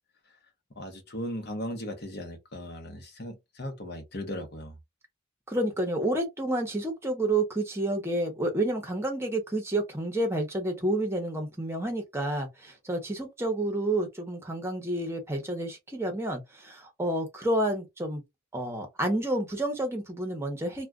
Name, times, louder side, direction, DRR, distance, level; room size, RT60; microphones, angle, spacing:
voice 1, 0.8-4.7, equal, 50° left, 0.8 m, -37 dB
voice 2, 5.5-18.2 18.5-20.9, right 1 dB, 10° right, 0.8 m, -29 dB
2.4 x 2.2 x 3.5 m
head